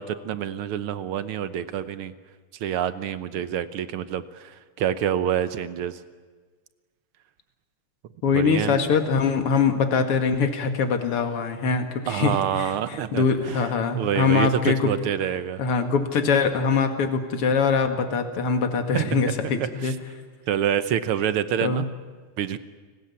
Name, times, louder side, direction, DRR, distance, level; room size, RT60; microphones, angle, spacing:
voice 1, 0.0-2.1 2.6-6.0 8.3-8.8 12.1-13.7 14.0-15.6 18.9-19.9 20.5-21.9 22.4-22.6, right 9 dB, 70° right, 13 dB, 1.3 m, -27 dB
voice 2, 8.2-14.9 15.6-19.9 21.6-21.9, left 5 dB, 50° left, 6 dB, 2.7 m, -23 dB
30.0 x 19.5 x 8.5 m, 1.5 s
omnidirectional pair, 3.4 m